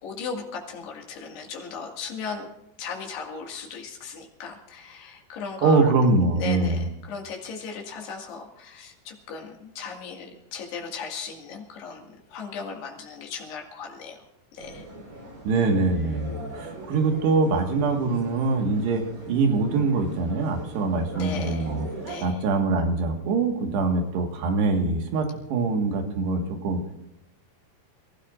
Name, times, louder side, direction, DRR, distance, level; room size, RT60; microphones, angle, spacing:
voice 1, 0.0-2.5 2.8-5.9 6.4-14.2 14.5-14.9 21.1-21.7 22.0-22.4, left 5 dB, 75° left, 0 dB, 4.1 m, -37 dB
voice 2, 5.6-6.8 15.5-21.9 22.2-26.8, right 3 dB, 80° right, 3 dB, 3.8 m, -23 dB
sound 1, 14.6-22.2, right 2 dB, 40° right, 6.1 m, -41 dB
28.0 x 16.0 x 2.5 m, 0.84 s
omnidirectional pair, 4.8 m